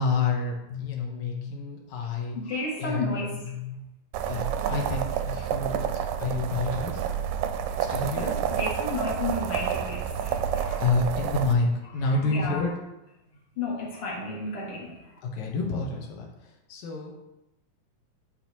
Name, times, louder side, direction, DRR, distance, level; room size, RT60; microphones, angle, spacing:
voice 1, 0.0-3.8 4.3-7.0 7.8-8.4 10.8-12.7 15.2-17.1, left 3 dB, 75° left, 0 dB, 2.3 m, -29 dB
voice 2, 2.4-3.3 8.2-10.8 12.3-12.6 13.6-15.0, left 2 dB, 45° left, -5 dB, 1.8 m, -33 dB
sound 1, 4.1-11.5, right 8 dB, 80° right, 1.8 m, -29 dB
10.0 x 4.2 x 3.0 m, 0.94 s
omnidirectional pair, 3.5 m